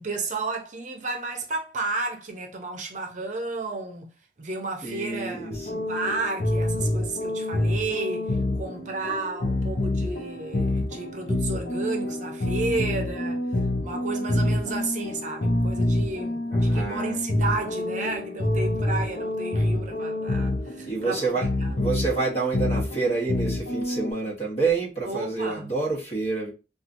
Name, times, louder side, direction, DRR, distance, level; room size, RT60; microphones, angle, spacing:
voice 1, 0.0-4.1 4.4-13.4 13.8-21.8 25.1-25.7, right 3 dB, 45° right, 0.7 m, -32 dB
voice 2, 4.8-5.8 16.5-17.2 20.9-21.5 21.8-26.5, right 4 dB, 35° left, 1.3 m, -28 dB
sound 1, 5.5-24.1, left 1 dB, 55° left, 0.6 m, -27 dB
2.9 x 2.4 x 2.5 m
head